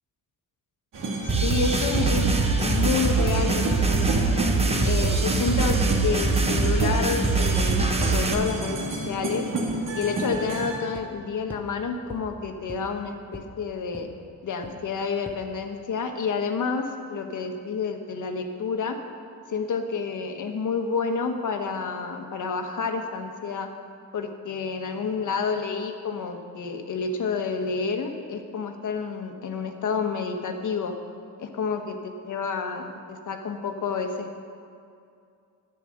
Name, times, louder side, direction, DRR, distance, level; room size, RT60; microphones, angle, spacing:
sound 1, 0.9-10.8, right 2 dB, 60° right, 2.2 m, -30 dB
voice 1, 1.2-2.3 2.6-4.4 4.8-9.5 9.9-14.1 14.4-19.0 19.5-23.7 24.1-30.9 31.4-34.4, left 5 dB, 55° left, 5 dB, 1.3 m, -29 dB
sound 2, 1.3-8.3, right 3 dB, 15° right, 1.0 m, -23 dB
sound 3, 2.1-2.2 2.8-2.9 3.4-3.5 4.1-4.2 4.9-5.0 5.7-5.8 6.5-6.6 8.5-8.6 9.7-9.8 10.3-10.4 10.9-11.0 11.5-11.6 12.1-12.2 12.7-12.8 13.3-13.4 13.9-14.0 14.6-14.7 15.3-15.4, left 1 dB, 5° left, 1.0 m, -39 dB
10.5 x 10.0 x 6.5 m, 2.4 s
cardioid pair, 130°, 36 cm